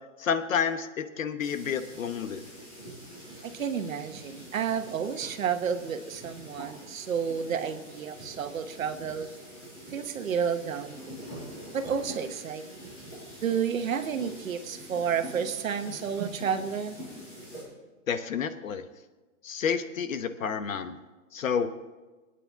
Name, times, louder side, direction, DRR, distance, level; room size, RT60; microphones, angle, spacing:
voice 1, 0.2-2.4 18.1-18.8 19.4-21.0 21.3-21.7, left 7 dB, 75° left, 10 dB, 1.1 m, -30 dB
sound 1, 1.4-17.6, equal, 15° left, 5.7 m, -45 dB
voice 2, 3.4-9.3 9.9-11.3 11.7-12.9 13.4-17.0, right 7 dB, 80° right, 8 dB, 1.3 m, -31 dB
23.5 x 9.2 x 3.6 m, 1.2 s
hypercardioid pair, 180°, 41 cm